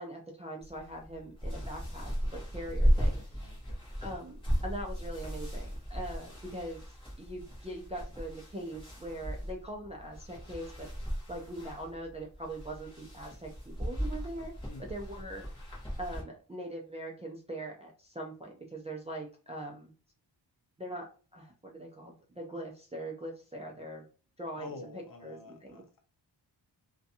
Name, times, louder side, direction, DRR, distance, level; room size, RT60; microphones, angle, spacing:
voice 1, 0.0-3.1 4.0-4.4 4.6-6.8 7.2-10.9 11.3-14.5 14.9-15.4 16.0-19.9 20.8-24.0 24.4-24.7 25.2-25.8, right 1 dB, 15° right, -1 dB, 0.3 m, -41 dB
sound 1, 0.6-16.2, equal, 10° left, 0.9 m, -35 dB
voice 2, 3.4-3.8 14.7-15.0 24.6-26.0, left 3 dB, 50° left, 4 dB, 0.6 m, -48 dB
2.5 x 2.3 x 2.6 m, 0.37 s
wide cardioid pair, 170°, 44 cm